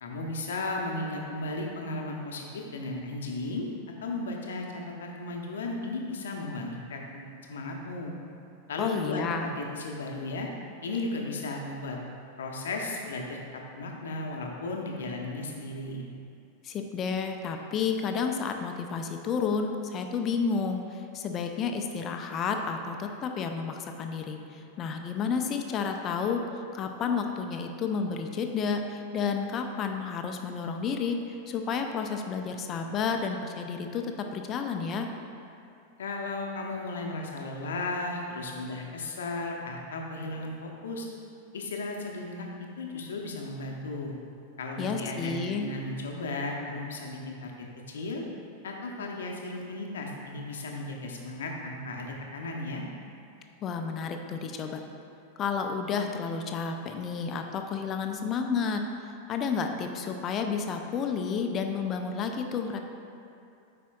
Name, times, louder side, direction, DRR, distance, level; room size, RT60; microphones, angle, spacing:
voice 1, 0.0-3.7 4.0-8.1 8.7-10.5 10.8-12.0 12.4-13.4 13.7-16.1 36.0-41.1 41.5-44.1 44.6-48.2 48.6-52.8, left 2 dB, 65° left, 0 dB, 0.7 m, -35 dB
voice 2, 8.8-9.5 16.6-26.4 26.7-35.1 44.8-45.7 53.6-54.8 55.4-62.8, left 5 dB, 30° left, 5 dB, 0.5 m, -31 dB
8.2 x 5.0 x 2.3 m, 2.7 s
figure-of-eight pair, 90°, 0 cm